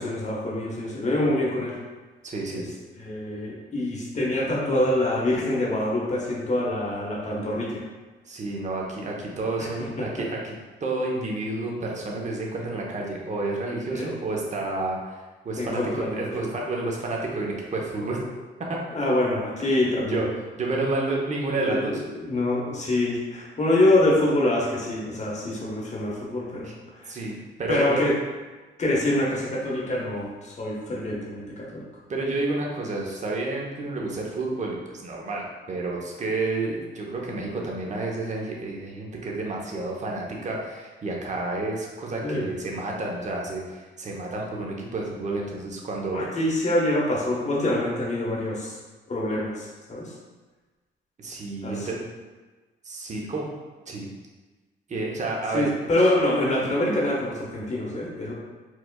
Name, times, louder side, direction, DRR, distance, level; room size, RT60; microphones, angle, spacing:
voice 1, 0.0-1.8 2.5-2.6 3.0-7.8 9.6-10.1 13.9-14.1 15.6-16.3 18.9-20.2 21.7-26.7 27.0-27.1 27.7-28.1 28.8-31.8 42.2-42.5 46.1-48.8 49.1-50.1 51.6-52.0 55.5-58.3, left 1 dB, 35° left, -4 dB, 1.0 m, -25 dB
voice 2, 2.2-2.7 8.3-10.6 10.8-15.2 15.4-18.2 18.7-18.8 19.7-19.8 20.1-20.3 20.6-22.0 26.6-26.7 27.1-28.0 32.1-46.2 51.2-52.0 52.8-53.5 53.9-54.1 54.9-55.8, right 2 dB, 35° right, -1 dB, 0.7 m, -30 dB
4.5 x 2.3 x 2.2 m, 1.3 s
cardioid pair, 90°, 20 cm